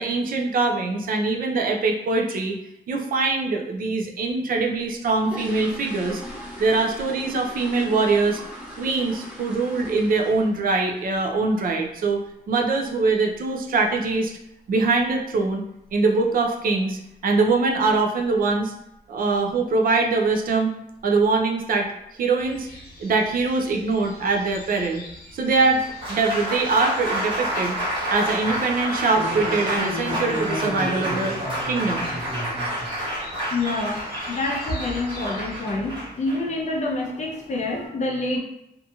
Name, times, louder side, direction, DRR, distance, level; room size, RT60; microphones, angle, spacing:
voice 1, 0.0-2.5 2.9-6.2 6.6-8.4 8.8-12.2 12.5-14.3 14.7-15.6 15.9-18.7 19.1-20.7 21.0-21.9 22.2-22.7 23.0-25.0 25.3-25.8 26.1-27.7 28.1-31.4 31.7-32.1, right 3 dB, 60° right, 2 dB, 0.4 m, -23 dB
sound 1, 4.8-10.7 11.0-11.3 11.6-11.7 12.1-12.2 12.6-12.8 13.1-13.2 13.8-13.9 14.1-14.3 14.8-15.1 15.4-15.5 15.9-16.1 16.4-16.5 16.9-17.0 17.6-18.0 18.3-18.6 19.0-19.1 19.5-19.6 20.3-20.5 20.9-21.4 21.8-21.9, equal, 5° right, 0.7 m, -39 dB
sound 2, 22.4-35.6, left 1 dB, 75° left, 0.9 m, -44 dB
Applause, 25.6-37.9, equal, 30° right, 1.0 m, -29 dB
voice 2, 33.5-38.4, left 2 dB, 45° left, -1 dB, 0.5 m, -27 dB
2.8 x 2.6 x 2.3 m, 0.80 s
wide cardioid pair, 160°, 17 cm